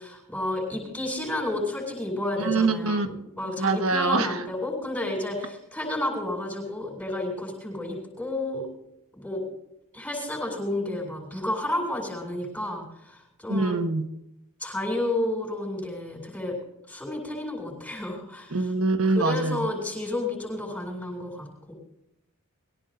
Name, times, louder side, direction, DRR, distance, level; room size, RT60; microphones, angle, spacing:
voice 1, 0.0-8.7 9.2-9.4 9.9-13.8 14.6-16.6 16.9-18.6 19.1-21.7, left 1 dB, 5° left, -2 dB, 7.8 m, -31 dB
voice 2, 2.4-3.1 3.6-4.4 13.5-14.1 18.5-19.7, right 3 dB, 70° right, 7 dB, 1.5 m, -24 dB
23.0 x 18.0 x 2.7 m, 0.82 s
head